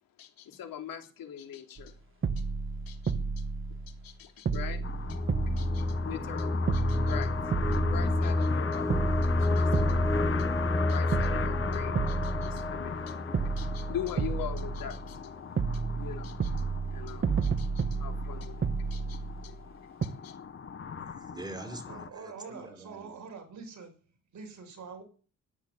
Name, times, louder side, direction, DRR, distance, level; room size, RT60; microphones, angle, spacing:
voice 1, 0.2-2.0 2.4-2.5 2.9-3.4 3.9-7.3 7.7-15.4 15.7-20.4, left 9 dB, 90° left, 3.6 m, -43 dB
sound 1, 1.8-1.9 2.2-4.1 4.5-6.4 6.7-8.5 8.9-10.8 11.1-13.0 13.3-15.2 15.6-19.7 20.0-20.1, right 4 dB, 40° right, 1.4 m, -32 dB
sound 2, 4.8-22.1, left 7 dB, 40° left, 1.1 m, -39 dB
sound 3, 5.1-14.9, left 2 dB, 10° left, 0.7 m, -30 dB
voice 2, 20.8-23.2, right 2 dB, 10° right, 4.8 m, -45 dB
voice 3, 21.9-24.0 24.3-25.0, right 5 dB, 60° right, 6.3 m, -45 dB
14.0 x 10.5 x 9.2 m
cardioid pair, 105°, 33 cm